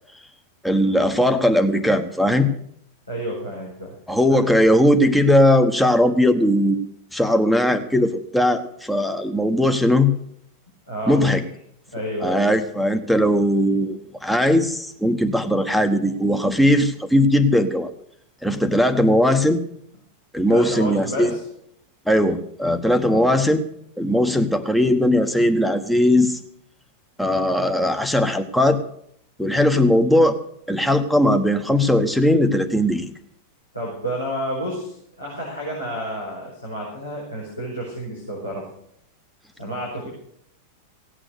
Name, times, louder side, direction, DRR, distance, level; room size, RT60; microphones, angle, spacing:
voice 1, 0.6-2.5 4.1-6.8 7.1-10.1 11.1-11.4 12.2-17.9 18.4-19.6 20.3-21.3 22.1-23.6 24.0-26.4 27.2-28.8 29.4-30.4 30.7-33.1, left 1 dB, ahead, 7 dB, 1.2 m, -19 dB
voice 2, 3.1-3.9 4.3-4.4 10.9-11.3 11.9-12.5 20.5-21.4 23.0-23.3 33.7-38.7 39.6-40.1, right 1 dB, 90° left, -6 dB, 5.1 m, -30 dB
17.0 x 8.8 x 6.8 m, 0.70 s
figure-of-eight pair, 90°, 0 cm